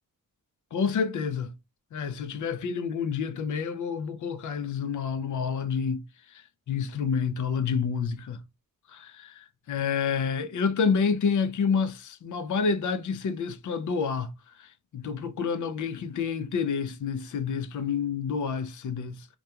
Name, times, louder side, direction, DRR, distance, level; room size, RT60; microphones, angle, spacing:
voice 1, 0.7-1.5 1.9-6.0 6.3-8.4 8.9-14.3 14.6-19.3, left 6 dB, 60° left, 0.4 m, -29 dB
2.3 x 2.2 x 2.8 m
wide cardioid pair, 95°, 36 cm